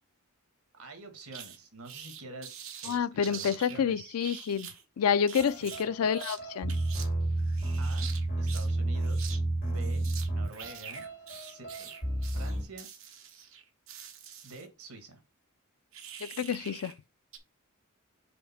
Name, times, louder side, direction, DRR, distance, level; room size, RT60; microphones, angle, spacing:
voice 1, 0.7-4.2 5.8-5.9 7.8-8.1 8.4-9.4 9.7-11.1 11.4-11.9 12.3-12.9 14.4-15.2, right 2 dB, 85° right, 1.6 m, -47 dB
sound 1, 1.3-1.6 1.8-3.8 4.2-4.8 5.3-6.4 6.7-7.1 7.4-8.7 9.0-9.4 9.6-14.7 15.9-17.0 17.3-17.4, right 8 dB, 65° right, 1.2 m, -45 dB
voice 2, 2.9-4.7 5.0-6.8 16.2-16.9, left 7 dB, 85° left, 0.4 m, -28 dB
sound 2, 5.4-12.6, right 2 dB, 45° left, 2.8 m, -31 dB
5.2 x 3.6 x 5.7 m
head